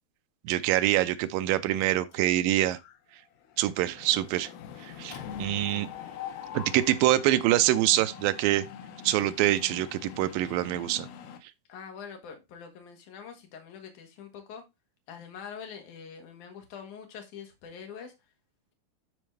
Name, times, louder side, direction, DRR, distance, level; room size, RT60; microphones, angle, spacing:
voice 1, 0.5-2.8 3.6-4.5 4.8-5.9 6.5-8.7 9.0-11.1, right 14 dB, 80° right, 2.2 m, -25 dB
Mechanisms, 1.8-2.4 2.7-3.0 3.2-11.4, left 8 dB, 85° left, 3.0 m, -43 dB
voice 2, 11.7-14.6 15.1-18.1, left 7 dB, 60° left, 2.9 m, -44 dB
12.5 x 4.3 x 3.3 m
omnidirectional pair, 4.4 m